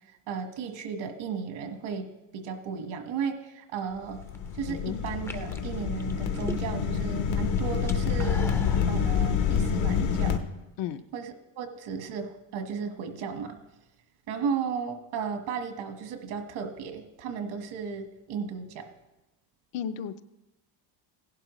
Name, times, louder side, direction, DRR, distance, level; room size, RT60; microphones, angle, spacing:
voice 1, 0.3-4.2 4.5-8.5 8.9-10.4 11.1-13.6 14.3-18.9, right 6 dB, 70° right, 6 dB, 1.5 m, -34 dB
sound 1, 4.0-10.4, left 7 dB, 75° left, 1.2 m, -27 dB
sound 2, 4.1-4.5 5.1-7.0 7.3-8.9, left 2 dB, 5° left, 0.5 m, -41 dB
voice 2, 4.7-5.0 10.8-11.0 19.7-20.2, left 9 dB, 60° left, 9 dB, 0.7 m, -33 dB
16.0 x 11.5 x 3.1 m, 1.0 s
cardioid pair, 120°, 49 cm